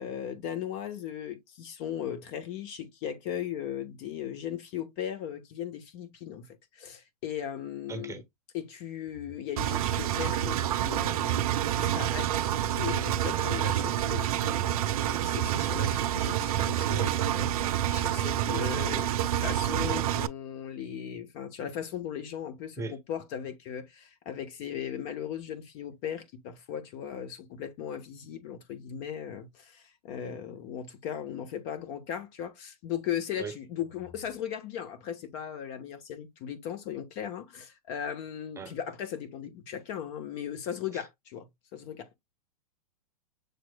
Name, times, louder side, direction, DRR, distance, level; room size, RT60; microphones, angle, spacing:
voice 1, 0.0-8.2 8.5-42.1, left 9 dB, 50° left, 1.0 m, -37 dB
voice 2, 7.9-8.2 22.8-23.0 33.4-33.5 38.6-38.7 40.9-41.0, right 4 dB, 15° right, 0.9 m, -37 dB
Engine, 9.6-20.3, right 11 dB, 70° right, 0.5 m, -28 dB
6.6 x 3.0 x 2.2 m
hypercardioid pair, 115°, 19 cm